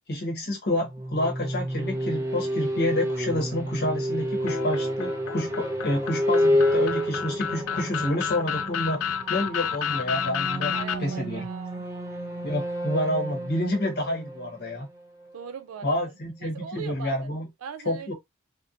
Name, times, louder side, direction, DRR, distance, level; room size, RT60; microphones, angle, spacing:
voice 1, 0.1-9.0 9.3-11.5 12.4-14.9 15.8-17.5 17.8-18.1, left 1 dB, 50° left, 0.9 m, -29 dB
sound 1, 0.8-15.5, equal, 15° right, 0.5 m, -29 dB
sound 2, 4.5-11.0, left 8 dB, 75° left, 0.3 m, -31 dB
voice 2, 10.7-11.9 15.3-16.0 16.4-17.3 17.6-18.1, right 7 dB, 80° right, 0.4 m, -40 dB
2.7 x 2.1 x 2.3 m
head